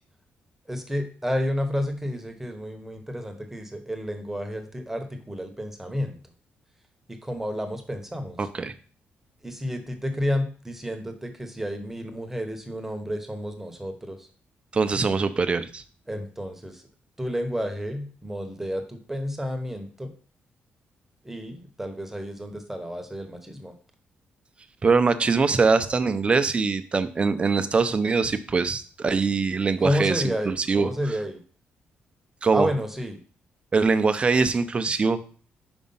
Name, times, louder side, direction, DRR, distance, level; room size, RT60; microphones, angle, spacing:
voice 1, 0.7-6.2 7.1-8.4 9.4-14.3 16.1-16.8 17.2-20.1 21.2-23.7 29.8-31.4 32.5-33.2, equal, 10° right, 5 dB, 1.0 m, -30 dB
voice 2, 8.4-8.7 14.7-15.8 24.8-30.9 32.4-32.7 33.7-35.2, right 4 dB, 30° right, 10 dB, 0.6 m, -23 dB
5.3 x 4.9 x 5.5 m, 0.43 s
cardioid pair, 125°, 4 cm